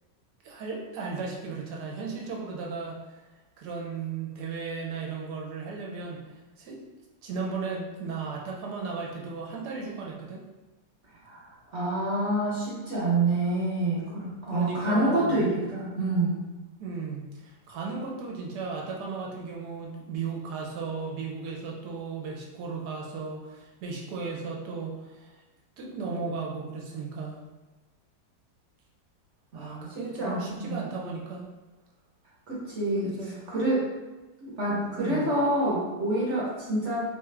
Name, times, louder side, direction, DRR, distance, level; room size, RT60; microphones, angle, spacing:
voice 1, 0.4-3.2 3.6-6.2 6.6-6.8 7.2-10.4 14.5-15.6 16.8-25.4 25.8-27.4 29.5-31.4 33.0-33.4 35.0-35.3, right 4 dB, 70° right, -2 dB, 1.1 m, -35 dB
voice 2, 11.2-16.5 29.5-30.8 32.5-33.9 34.4-37.0, right 1 dB, 55° right, -7 dB, 0.9 m, -27 dB
3.2 x 2.3 x 3.2 m, 1.2 s
omnidirectional pair, 1.9 m